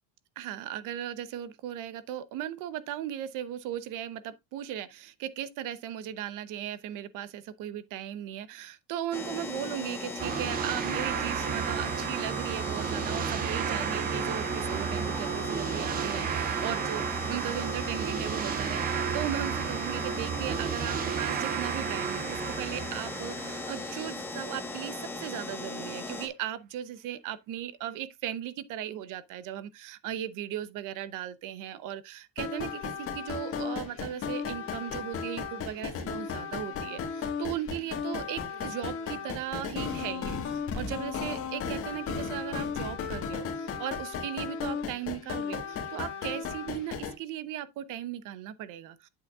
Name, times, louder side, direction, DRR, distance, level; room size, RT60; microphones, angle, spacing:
voice 1, 0.4-49.1, right 11 dB, 50° right, 0.8 m, -37 dB
sound 1, 9.1-26.3, left 3 dB, 5° left, 1.2 m, -38 dB
sound 2, 10.2-24.5, right 8 dB, 25° right, 0.5 m, -32 dB
sound 3, 32.4-47.1, left 6 dB, 35° left, 1.5 m, -35 dB
8.8 x 7.9 x 2.4 m
cardioid pair, 170°, 40 cm